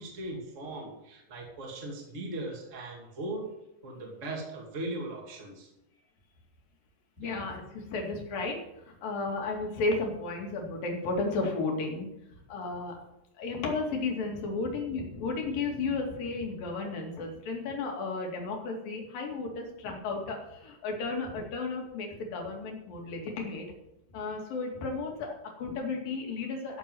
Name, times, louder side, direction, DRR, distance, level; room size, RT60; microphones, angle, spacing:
voice 1, 0.0-3.5 3.8-5.7 7.2-7.3, right 2 dB, 25° right, -1 dB, 2.5 m, -39 dB
voice 2, 7.2-12.1 12.5-13.0 13.4-23.7 24.1-26.8, left 3 dB, 85° left, 1 dB, 4.1 m, -33 dB
14.0 x 6.9 x 7.8 m, 0.86 s
omnidirectional pair, 3.9 m